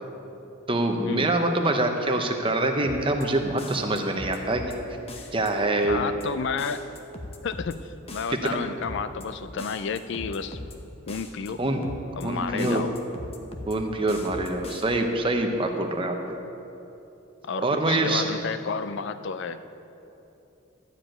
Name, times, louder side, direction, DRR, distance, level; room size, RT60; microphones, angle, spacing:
voice 1, 0.7-4.6 5.3-6.0 8.3-8.6 11.6-11.9 12.2-12.8 13.7-16.2 17.6-18.3, right 2 dB, 25° right, 4 dB, 0.8 m, -25 dB
sound 1, 2.8-3.3 3.6-4.8 5.1-5.5 5.8-6.3 6.6-7.8 8.1-8.5 8.8-9.3 9.6-10.8 11.1-11.5 11.8-12.3 12.6-13.8 14.1-14.8, left 2 dB, 30° left, 0.8 m, -40 dB
voice 2, 5.9-6.9 7.4-10.6 11.1-11.6 12.2-12.9 17.4-19.6, left 5 dB, 55° left, 11 dB, 0.4 m, -31 dB
12.5 x 5.0 x 8.9 m, 2.9 s
head